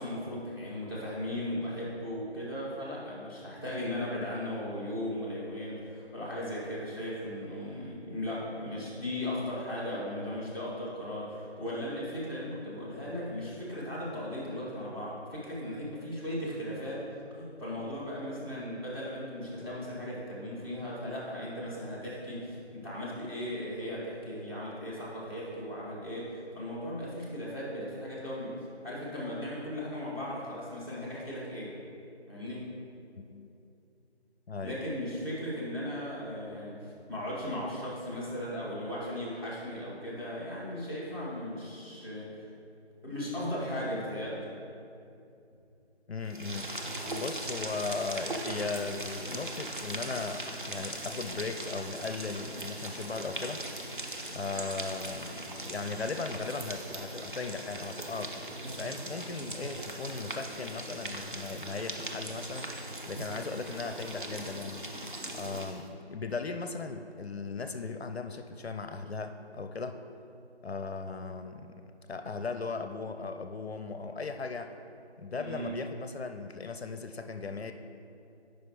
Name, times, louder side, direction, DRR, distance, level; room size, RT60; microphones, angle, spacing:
voice 1, 0.0-17.0 17.3-31.8 32.3-32.7 34.6-42.4 43.0-44.5 75.3-75.7, left 1 dB, 20° right, -5 dB, 1.2 m, -37 dB
voice 2, 33.2-33.5 34.5-34.8 46.1-46.7 47.1-53.6 54.3-62.7 63.1-64.8 65.3-70.0 70.6-74.7 75.2-77.7, left 4 dB, 70° left, 8 dB, 0.5 m, -37 dB
sound 1, 46.2-65.9, right 1 dB, 50° right, 0.6 m, -39 dB
8.8 x 5.1 x 3.0 m, 2.7 s
figure-of-eight pair, 165°, 33 cm